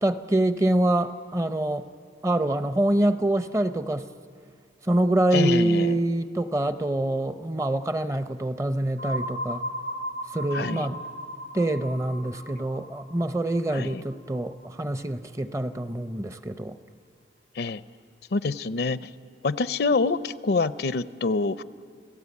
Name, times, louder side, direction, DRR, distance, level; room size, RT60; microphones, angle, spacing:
voice 1, 0.0-1.9 2.2-4.1 4.8-9.6 10.3-11.0 11.5-16.8, right 1 dB, 15° right, 0.5 m, -25 dB
voice 2, 5.3-6.0 10.5-10.9 13.7-14.0 17.6-17.8 18.3-19.1 19.4-21.6, left 3 dB, 55° left, 0.5 m, -26 dB
sound 1, 9.0-14.7, equal, 75° right, 3.9 m, -36 dB
30.0 x 17.0 x 8.3 m
head